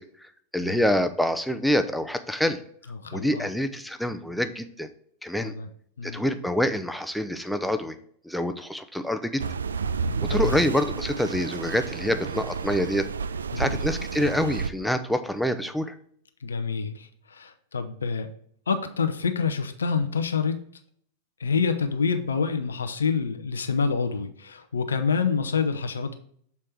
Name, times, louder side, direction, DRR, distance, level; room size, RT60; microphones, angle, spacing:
voice 1, 0.5-2.6 3.1-4.9 5.2-5.5 6.0-8.0 8.3-9.4 10.3-13.1 13.6-15.9, left 1 dB, ahead, 9 dB, 0.6 m, -26 dB
voice 2, 2.9-3.5 5.4-5.7 6.0-6.2 10.0-10.6 13.5-13.8 16.4-18.3 18.7-20.6 21.4-26.1, left 5 dB, 70° left, 7 dB, 0.6 m, -27 dB
sound 1, 9.4-14.7, right 5 dB, 70° right, 0.3 m, -31 dB
7.0 x 4.3 x 4.7 m, 0.64 s
figure-of-eight pair, 90°, 0 cm